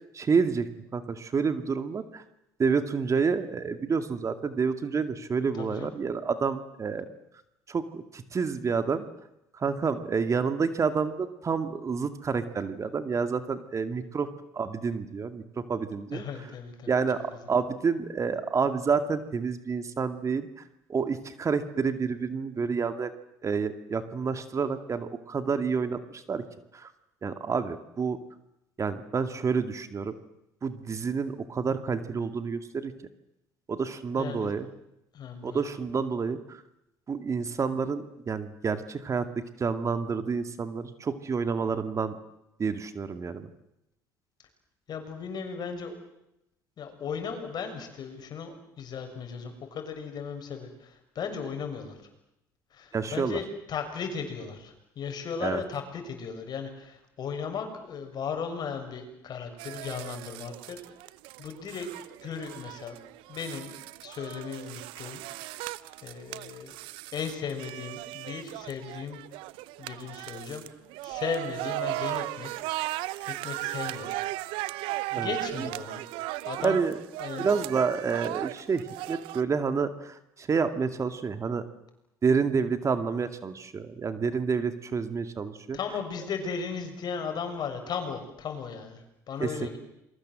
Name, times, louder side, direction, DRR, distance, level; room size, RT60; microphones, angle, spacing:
voice 1, 0.1-2.2 2.6-7.1 7.7-9.0 9.5-14.3 14.5-16.2 16.9-17.2 17.5-20.5 20.9-23.1 23.4-26.4 26.7-26.9 27.2-28.2 28.8-30.1 30.6-32.9 33.7-34.7 35.4-36.6 37.1-42.2 42.6-43.5 52.9-53.4 55.4-55.6 75.1-75.3 75.6-75.7 76.6-77.0 77.4-81.7 82.2-85.8 89.4-89.8, right 5 dB, 35° right, 10 dB, 2.3 m, -29 dB
voice 2, 5.6-5.9 16.1-16.9 34.2-34.5 35.1-35.6 44.9-45.9 46.8-52.0 52.7-60.8 61.4-61.9 62.2-63.0 63.3-63.7 64.0-65.2 66.0-66.8 67.1-69.2 69.8-70.6 71.0-72.5 73.2-74.1 75.2-76.0 76.4-76.8 77.2-77.5 85.7-89.8, left 6 dB, 50° left, 6 dB, 6.7 m, -36 dB
sound 1, 59.6-79.4, right 18 dB, 75° right, 0.9 m, -37 dB
28.5 x 22.5 x 7.7 m, 0.86 s
supercardioid pair, 80°, 9 cm